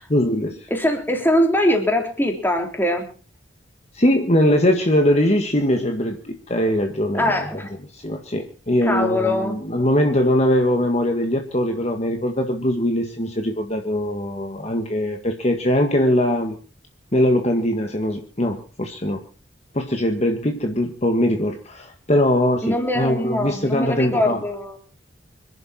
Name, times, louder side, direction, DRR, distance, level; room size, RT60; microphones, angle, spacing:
voice 1, 0.1-0.7 3.9-7.5 7.9-16.6 17.1-19.2 19.7-24.4, left 1 dB, 35° left, 4 dB, 1.8 m, -21 dB
voice 2, 0.7-3.1 7.2-7.7 8.8-9.6 22.6-24.8, left 1 dB, 10° left, 3 dB, 3.7 m, -22 dB
26.5 x 11.5 x 4.4 m, 0.40 s
head